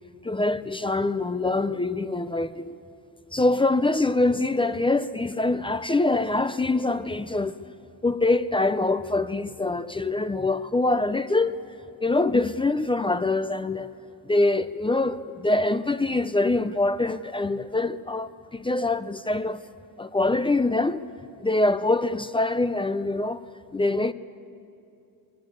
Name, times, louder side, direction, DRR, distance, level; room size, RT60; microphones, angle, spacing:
voice 1, 0.2-2.8 3.3-7.6 8.0-11.6 12.0-13.9 14.2-19.6 20.0-21.0 21.4-23.4 23.7-24.1, left 2 dB, 15° left, 0.5 m, -24 dB
23.5 x 22.5 x 8.1 m
cardioid pair, 130°, 38 cm